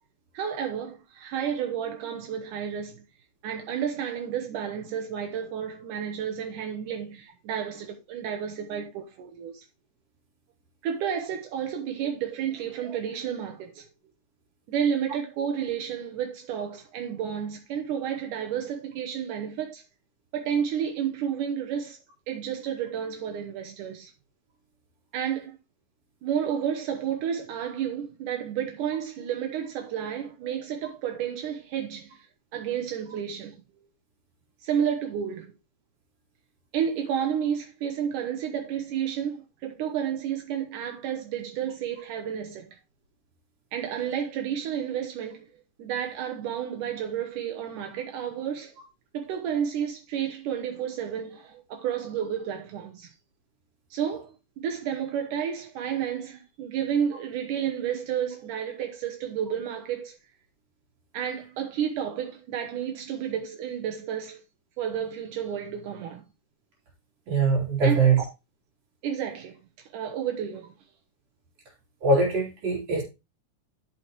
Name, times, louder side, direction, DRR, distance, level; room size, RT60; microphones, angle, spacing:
voice 1, 0.3-3.0 3.4-9.7 10.8-13.9 14.7-19.8 20.3-22.0 22.3-24.1 25.1-25.5 26.2-32.3 32.5-33.6 34.6-35.5 36.7-42.7 43.7-45.5 45.8-48.7 49.1-53.1 53.9-60.2 61.1-64.4 64.8-66.2 67.8-68.0 69.0-69.6 69.9-70.7, right 8 dB, 75° right, 2.4 m, -31 dB
voice 2, 67.3-68.2 72.0-73.0, right 4 dB, 50° right, 4.2 m, -22 dB
11.5 x 5.9 x 3.0 m
omnidirectional pair, 3.8 m